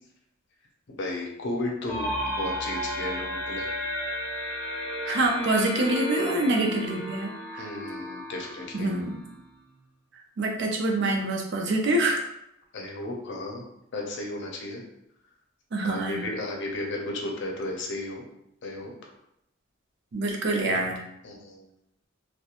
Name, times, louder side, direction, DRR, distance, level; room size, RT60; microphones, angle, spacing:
voice 1, 0.9-2.1 2.4-3.7 7.6-8.9 12.7-13.6 13.9-14.8 15.8-18.2 18.6-18.9 21.2-21.7, left 2 dB, 60° left, 0 dB, 0.5 m, -34 dB
sound 1, 1.9-9.5, equal, 5° left, 0.4 m, -33 dB
voice 2, 5.1-7.6 8.7-9.2 10.4-12.2 15.7-16.2 20.1-21.0, right 2 dB, 60° right, 1 dB, 0.5 m, -26 dB
2.4 x 2.1 x 2.8 m, 0.79 s
head